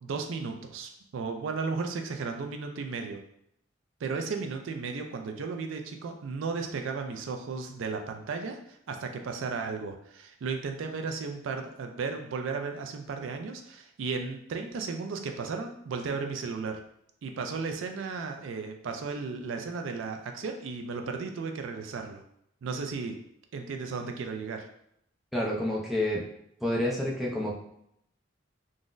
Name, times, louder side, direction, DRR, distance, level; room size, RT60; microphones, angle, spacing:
voice 1, 0.0-3.2 4.0-16.8 17.2-22.2 22.6-23.1 23.5-24.7, right 4 dB, 70° right, 5 dB, 0.3 m, -35 dB
voice 2, 25.3-26.2 26.6-27.5, left 1 dB, ahead, -4 dB, 0.4 m, -28 dB
3.7 x 2.0 x 2.5 m, 0.74 s
head